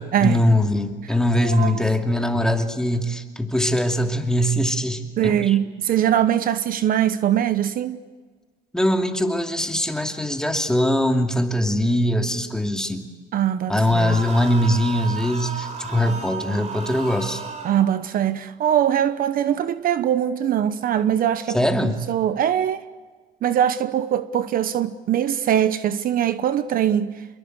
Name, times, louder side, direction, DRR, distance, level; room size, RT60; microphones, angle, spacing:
voice 1, 0.2-5.6 8.7-13.1 13.7-17.4 21.5-22.0, left 1 dB, 5° left, 2.7 m, -22 dB
voice 2, 1.4-1.8 5.2-8.0 13.3-14.2 17.6-22.8 23.4-27.1, right 10 dB, 60° right, 1.0 m, -22 dB
sound 1, 13.9-17.9, right 5 dB, 40° right, 4.2 m, -33 dB
27.0 x 22.5 x 8.1 m
cardioid pair, 110°, 17 cm